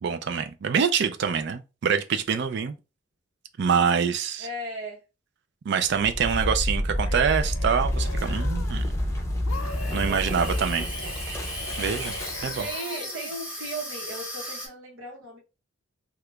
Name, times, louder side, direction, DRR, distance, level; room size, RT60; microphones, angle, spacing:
voice 1, 0.0-2.7 3.6-4.5 5.7-8.9 9.9-10.9 11.8-12.1 12.4-12.6, right 6 dB, 55° right, 0.4 m, -25 dB
voice 2, 4.4-5.0 9.7-11.1 12.6-15.4, right 1 dB, 80° right, 1.1 m, -37 dB
sound 1, 5.9-12.8, left 1 dB, 15° left, 0.6 m, -29 dB
sound 2, 6.7-9.0 9.5-13.3, left 5 dB, 75° left, 0.5 m, -42 dB
Water tap faucet / Sink (filling or washing), 9.5-14.7, equal, 5° right, 0.9 m, -37 dB
2.9 x 2.3 x 3.2 m
head